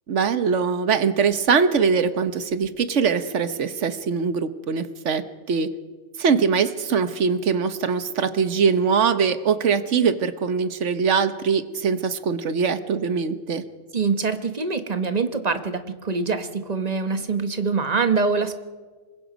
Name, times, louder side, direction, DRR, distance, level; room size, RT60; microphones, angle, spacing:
voice 1, 0.1-5.2 5.5-5.7 6.2-13.6, right 6 dB, 70° right, 11 dB, 1.3 m, -22 dB
voice 2, 13.9-18.6, right 4 dB, 35° right, 9 dB, 1.2 m, -24 dB
25.5 x 21.5 x 5.2 m, 1.4 s
omnidirectional pair, 1.3 m